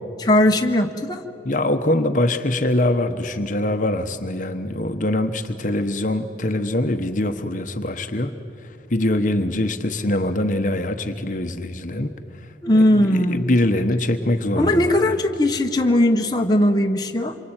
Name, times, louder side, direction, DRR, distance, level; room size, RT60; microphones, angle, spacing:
voice 1, 0.2-1.3 12.6-13.5 14.6-17.4, left 1 dB, 20° left, 2 dB, 1.2 m, -19 dB
voice 2, 1.4-8.3 8.9-12.1 12.7-15.0, left 1 dB, 45° left, 7 dB, 1.1 m, -23 dB
27.0 x 24.0 x 9.0 m, 2.7 s
head